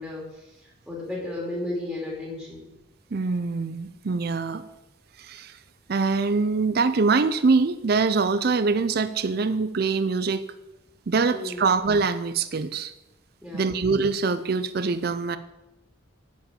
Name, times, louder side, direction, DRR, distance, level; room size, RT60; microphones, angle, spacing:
voice 1, 0.0-2.7 11.3-11.7 13.4-13.8, left 1 dB, ahead, -3 dB, 2.3 m, -34 dB
voice 2, 3.1-4.6 5.2-5.5 5.9-10.4 11.1-12.9 13.5-15.4, right 4 dB, 50° right, 12 dB, 0.5 m, -24 dB
10.0 x 5.1 x 7.1 m, 0.94 s
head